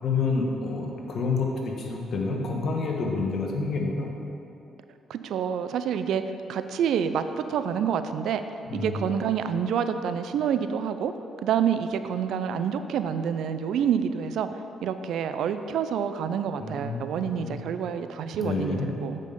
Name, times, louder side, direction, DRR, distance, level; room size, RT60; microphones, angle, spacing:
voice 1, 0.0-4.1 8.7-9.0 16.6-17.6 18.4-18.9, left 4 dB, 60° left, 0 dB, 1.3 m, -28 dB
voice 2, 5.1-6.2 6.5-8.4 8.7-11.1 11.4-14.5 14.8-19.2, right 8 dB, 75° right, 10 dB, 0.4 m, -27 dB
7.8 x 5.2 x 5.4 m, 2.8 s
cardioid pair, 90°, 0 cm